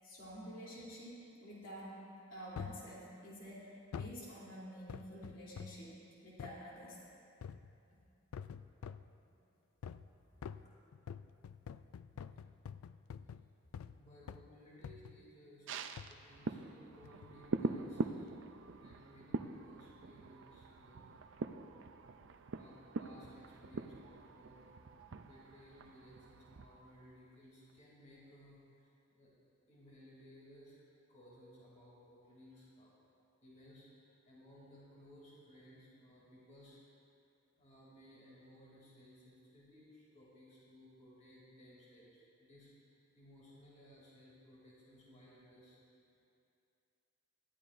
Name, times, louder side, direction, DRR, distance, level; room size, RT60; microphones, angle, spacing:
voice 1, 0.0-2.0 2.3-6.0 6.2-7.0, equal, 65° left, -6 dB, 3.3 m, -49 dB
sound 1, 2.6-2.9 3.9-4.2 4.9-5.9 6.4-6.6 7.4-7.8 8.3-9.1 9.8-10.1 10.4-14.0 14.3-14.5 14.8-15.2 16.0-16.2 17.0-17.4 17.9-18.0, left 7 dB, 85° left, 0.4 m, -47 dB
voice 2, 13.9-15.7 16.1-18.3 18.8-21.1 22.5-24.7 25.2-29.3 29.7-30.8 31.1-32.9 33.4-36.8 37.6-42.7 43.1-45.8 46.1-46.2, equal, 35° left, -7 dB, 3.0 m, -60 dB
sound 2, 15.7-27.4 27.7-27.8, right 4 dB, 60° right, 0.5 m, -43 dB
19.0 x 13.5 x 2.6 m, 2.6 s
head